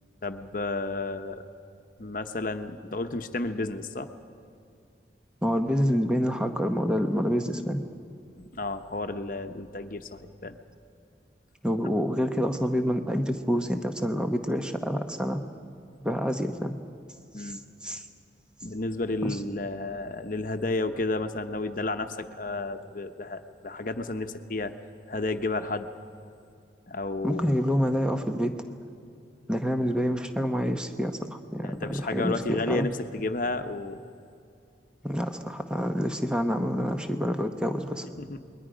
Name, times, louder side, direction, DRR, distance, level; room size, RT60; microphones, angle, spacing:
voice 1, 0.2-1.4 2.0-4.1 8.4-10.6 17.3-17.6 18.6-24.7 25.1-25.9 26.9-27.6 29.8-30.0 31.6-34.0 38.2-38.5, left 2 dB, 50° left, 7 dB, 1.0 m, -32 dB
voice 2, 5.4-7.8 11.6-15.4 16.0-16.7 17.4-18.0 19.2-19.4 27.2-28.5 29.5-32.9 35.0-38.1, equal, 5° right, 6 dB, 1.0 m, -27 dB
28.5 x 21.5 x 5.1 m, 2.4 s
head